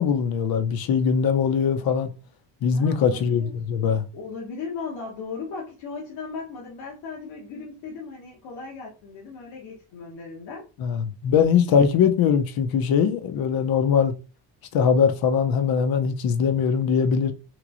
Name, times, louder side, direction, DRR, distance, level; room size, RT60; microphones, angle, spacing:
voice 1, 0.0-2.1 2.6-4.1 10.8-14.1 14.7-17.3, left 7 dB, 55° left, 0.6 m, -21 dB
voice 2, 2.7-3.5 4.1-10.7, left 4 dB, 85° left, 1.1 m, -37 dB
3.0 x 2.9 x 2.5 m
cardioid pair, 85°, 45 cm